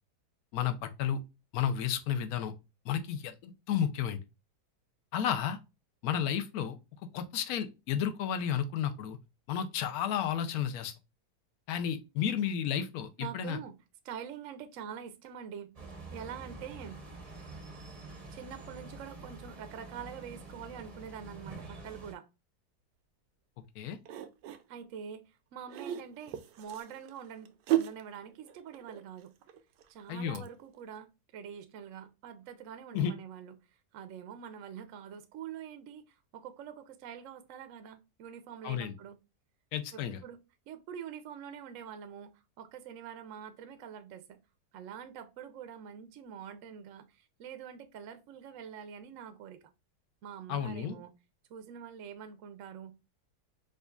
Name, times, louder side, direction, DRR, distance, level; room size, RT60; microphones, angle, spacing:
voice 1, 0.5-1.2 1.5-2.5 2.8-4.2 5.1-5.6 6.0-6.8 7.1-9.2 9.5-10.9 11.7-13.6 23.8-24.0 30.1-30.4 32.9-33.1 38.6-38.9 39.7-40.2 50.5-51.0, left 9 dB, 70° left, 1.0 m, -32 dB
voice 2, 13.2-13.8 14.0-15.7 16.1-17.0 18.3-22.3 24.7-29.3 29.9-33.5 33.9-39.2 39.9-40.4 40.7-42.3 42.6-44.4 44.7-49.6 50.2-51.1 51.5-52.9, right 8 dB, 65° right, 0.8 m, -45 dB
sound 1, 15.7-22.1, right 2 dB, 35° right, 0.6 m, -47 dB
sound 2, 24.1-24.6 25.6-30.5 30.8-30.9, right 13 dB, 90° right, 1.2 m, -35 dB
5.0 x 2.4 x 2.3 m
omnidirectional pair, 1.7 m